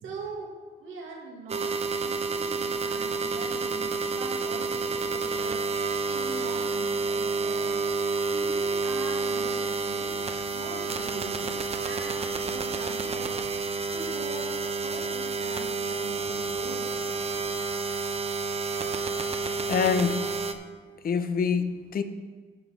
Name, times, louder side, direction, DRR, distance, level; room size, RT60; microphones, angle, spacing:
voice 1, 0.0-0.5 0.8-7.7 8.3-11.5 11.8-13.3 13.6-14.5 14.8-16.9, right 3 dB, 85° right, -1 dB, 2.2 m, -42 dB
sound 1, 1.5-20.5, right 4 dB, 30° right, 0.8 m, -29 dB
voice 2, 19.7-20.4 21.0-22.0, left 6 dB, 45° left, 10 dB, 0.8 m, -26 dB
11.5 x 5.9 x 5.1 m, 1.4 s
cardioid pair, 90°, 20 cm